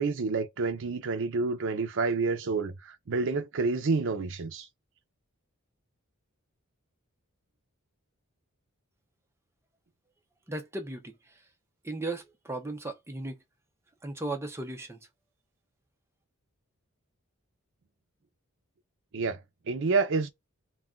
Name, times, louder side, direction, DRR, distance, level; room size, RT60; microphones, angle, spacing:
voice 1, 0.0-4.7 19.1-19.4 19.7-20.3, right 4 dB, 60° right, 0.5 m, -28 dB
voice 2, 10.5-11.4 11.8-13.4 14.0-15.0, right 2 dB, 10° right, 0.5 m, -36 dB
2.4 x 2.2 x 3.6 m
head